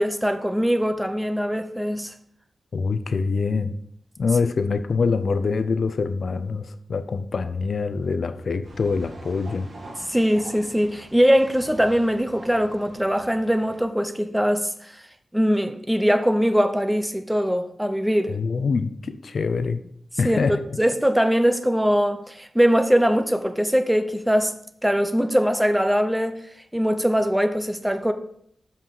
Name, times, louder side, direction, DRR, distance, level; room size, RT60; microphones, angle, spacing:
voice 1, 0.0-2.1 10.1-14.7 15.3-18.4 20.2-20.4 20.8-24.5 24.8-26.4 26.7-28.1, equal, 5° right, 0.7 m, -21 dB
voice 2, 2.7-3.8 4.2-9.7 18.3-19.8 20.2-20.6, left 4 dB, 60° left, 0.6 m, -25 dB
sound 1, 8.6-13.8, right 1 dB, 65° right, 1.9 m, -44 dB
7.1 x 5.7 x 4.7 m
wide cardioid pair, 125°, 0 cm